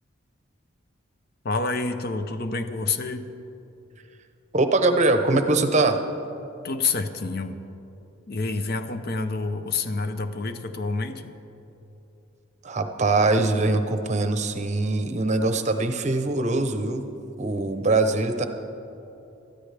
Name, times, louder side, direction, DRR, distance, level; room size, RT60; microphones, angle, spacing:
voice 1, 1.4-3.3 6.6-7.6 8.3-11.3, left 3 dB, 50° left, 9 dB, 0.6 m, -28 dB
voice 2, 4.5-6.0 12.6-17.1 17.4-18.5, right 2 dB, 35° right, 7 dB, 0.7 m, -22 dB
19.0 x 13.5 x 3.4 m, 2.8 s
head